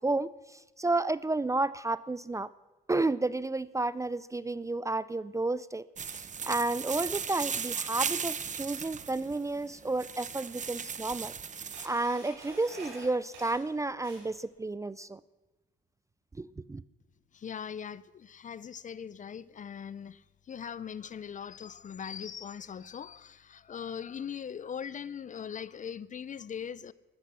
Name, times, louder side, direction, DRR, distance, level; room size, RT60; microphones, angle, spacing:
voice 1, 0.8-2.5 2.9-5.8 6.5-11.3 11.8-15.2 16.4-16.8, right 2 dB, 15° right, 0.4 m, -31 dB
sound 1, 6.0-11.9, right 6 dB, 40° right, 0.9 m, -36 dB
Camera, 9.5-9.6 10.5-10.6 11.0-14.5, right 2 dB, 80° right, 6.0 m, -48 dB
voice 2, 17.3-26.9, left 7 dB, 40° left, 0.6 m, -40 dB
14.0 x 12.5 x 6.2 m
cardioid pair, 90°, 20 cm